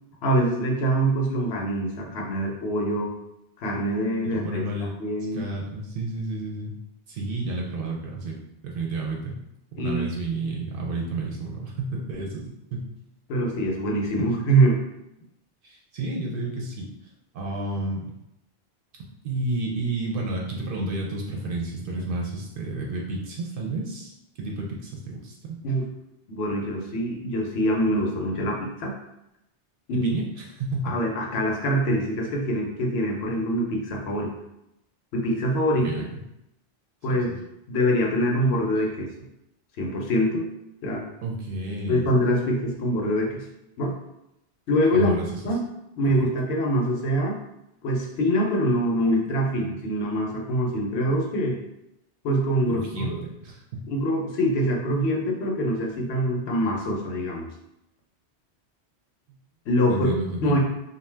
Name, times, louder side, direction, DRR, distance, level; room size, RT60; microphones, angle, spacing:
voice 1, 0.2-3.1 3.6-4.6 5.0-5.4 9.8-10.1 13.3-14.8 25.6-25.8 26.3-28.9 29.9-30.1 30.8-34.3 35.1-35.9 37.0-37.3 37.7-39.1 39.8-40.5 40.8-41.1 41.9-43.4 43.8-43.9 44.7-45.1 45.4-45.6 46.0-47.4 47.8-51.6 52.2-53.2 53.9-57.5 59.7-60.1 60.4-60.6, equal, 70° left, 0 dB, 0.8 m, -24 dB
voice 2, 4.2-4.9 5.3-6.7 7.1-8.4 8.6-9.4 9.7-12.9 15.6-16.9 17.3-18.1 19.2-24.1 24.4-25.6 29.9-30.9 35.8-36.1 37.1-37.4 41.2-42.0 44.9-45.4 52.7-53.9 59.9-60.6, right 2 dB, 60° right, -1 dB, 0.6 m, -31 dB
2.5 x 2.1 x 3.2 m, 0.84 s
omnidirectional pair, 1.1 m